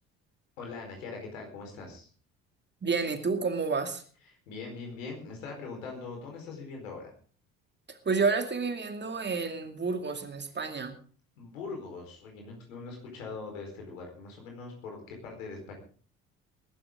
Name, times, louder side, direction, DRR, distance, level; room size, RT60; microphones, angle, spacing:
voice 1, 0.6-2.1 4.5-7.1 11.4-15.8, left 4 dB, 70° left, 2 dB, 4.6 m, -41 dB
voice 2, 2.8-4.0 7.9-11.0, right 4 dB, 25° right, 6 dB, 2.3 m, -30 dB
21.0 x 11.5 x 3.8 m, 0.42 s
figure-of-eight pair, 50°, 40 cm